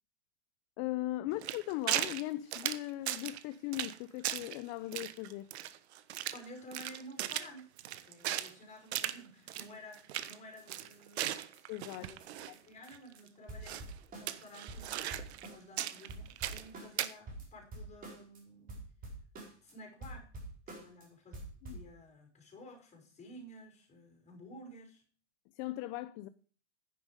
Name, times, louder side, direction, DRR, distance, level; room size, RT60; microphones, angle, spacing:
voice 1, 0.8-5.5 11.7-12.1 21.6-21.8 25.5-26.3, left 16 dB, 35° left, 0.6 m, -38 dB
sound 1, 1.4-2.2 2.5-3.4 3.7-4.0 4.2-4.6 4.9-6.4 6.7-8.5 8.9-9.2 9.5-9.7 9.9-10.3 10.7-12.5 12.9-13.0 13.7-13.9 14.3-15.5 15.8-16.7 17.0-17.1, right 12 dB, 65° right, 1.2 m, -37 dB
voice 2, 6.3-7.7 8.0-11.5 11.9-18.9 19.6-20.3 20.7-21.4 21.7-25.0, equal, 20° left, 5.8 m, -53 dB
sound 2, 9.9-10.0 10.2-10.3 10.6-10.7 10.9-11.0 11.2-11.3 11.5-11.6 11.9-12.0 12.2-12.3 12.5-12.9 13.2-13.3 13.5-15.8 16.1-18.4 18.7-19.7 20.0-21.1 21.3-21.9, right 2 dB, 25° right, 4.8 m, -48 dB
10.5 x 9.8 x 5.2 m
hypercardioid pair, 130°, 35 cm